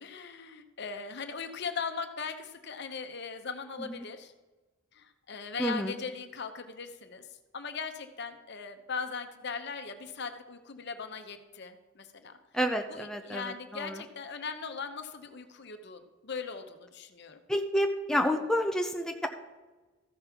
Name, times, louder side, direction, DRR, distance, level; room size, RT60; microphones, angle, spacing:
voice 1, 0.0-4.3 4.9-7.3 7.5-12.4 12.9-17.4, left 5 dB, 55° left, 7 dB, 0.9 m, -39 dB
voice 2, 5.6-6.0 12.5-14.0 17.5-19.3, equal, 5° left, 4 dB, 0.5 m, -30 dB
14.0 x 5.4 x 5.9 m, 1.2 s
head